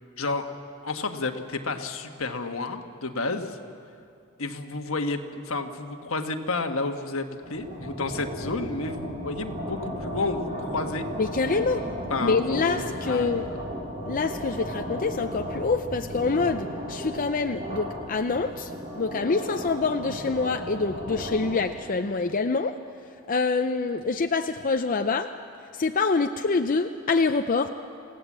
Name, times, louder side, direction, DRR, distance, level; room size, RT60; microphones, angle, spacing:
voice 1, 0.2-0.5 0.8-3.6 4.4-11.0 12.1-13.5, left 3 dB, 75° left, 5 dB, 1.4 m, -31 dB
sound 1, 7.4-21.6, equal, 40° right, 5.0 m, -35 dB
voice 2, 11.2-11.8 12.2-13.4 14.1-18.7 19.0-22.8 23.3-25.3 25.8-27.7, left 4 dB, 40° left, 6 dB, 0.6 m, -26 dB
27.5 x 16.5 x 7.5 m, 2.6 s
head